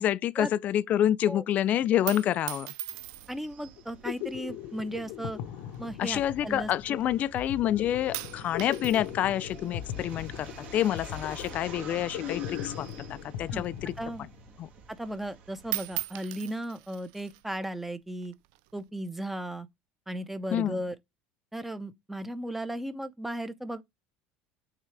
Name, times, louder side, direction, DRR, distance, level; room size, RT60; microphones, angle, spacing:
voice 1, 0.0-2.7 6.0-13.9 14.6-14.7 20.5-20.7, left 11 dB, 45° left, 0.4 m, -28 dB
sound 1, 1.8-3.5 4.4-4.8 5.6-7.0 7.4-7.8 8.1-12.2 12.5-14.2 14.5-14.6 15.0-15.4 15.6-17.4 18.2-18.8, right 18 dB, 75° right, 0.3 m, -40 dB
sound 2, 2.9-16.0, right 6 dB, 45° right, 1.9 m, -49 dB
voice 2, 3.3-5.4 5.8-7.0 13.5-14.3 15.0-18.3 18.7-19.7 20.1-21.0 21.5-23.8, right 1 dB, 5° right, 0.8 m, -36 dB
sound 3, 3.8-14.6, left 12 dB, 70° left, 0.8 m, -39 dB
8.8 x 3.7 x 3.3 m
supercardioid pair, 115°, 4 cm